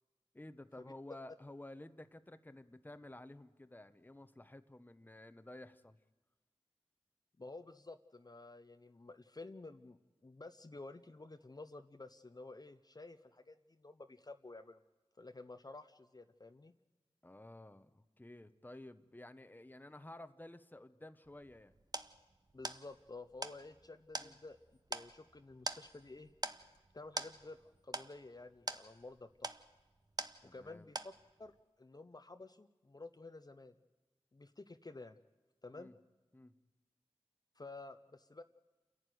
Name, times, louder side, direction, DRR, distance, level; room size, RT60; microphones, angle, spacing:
voice 1, 0.3-6.0 17.2-21.8 24.2-24.4 30.4-30.9 35.7-35.9 36.3-36.5, left 1 dB, 20° left, 11 dB, 1.0 m, -53 dB
voice 2, 7.4-14.8 15.2-16.7 22.5-24.6 24.9-26.3 26.9-27.6 27.8-29.5 30.4-31.1 31.4-33.7 34.3-35.2 35.6-35.9 37.6-38.4, left 2 dB, 40° left, 8 dB, 0.8 m, -52 dB
sound 1, 21.3-30.7 31.0-31.5, right 2 dB, 40° right, 1.0 m, -45 dB
28.0 x 11.0 x 9.4 m, 1.2 s
cardioid pair, 40°, 10 cm